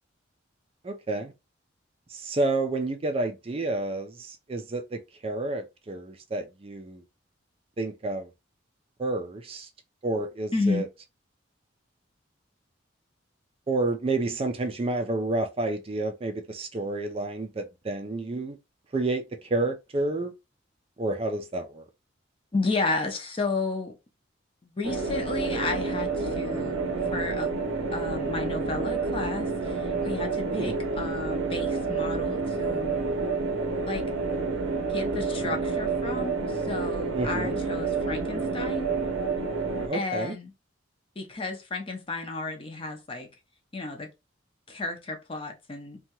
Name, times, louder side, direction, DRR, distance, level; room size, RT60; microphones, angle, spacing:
voice 1, 0.8-1.3 2.1-7.0 7.8-8.3 9.0-9.7 10.0-10.9 13.7-18.6 18.9-20.3 21.0-21.8 30.5-30.8 37.1-37.6 39.8-40.4, right 2 dB, 30° right, 0.3 m, -30 dB
voice 2, 10.5-10.8 22.5-24.0 24.6-26.8 27.1-27.5 27.9-33.0 33.9-34.0 34.9-38.9 39.9-40.5 41.2-43.3 43.7-44.1 44.7-46.0, left 3 dB, 30° left, 0.6 m, -32 dB
sound 1, 24.8-39.9, right 4 dB, 90° right, 0.6 m, -29 dB
2.8 x 2.2 x 2.8 m
head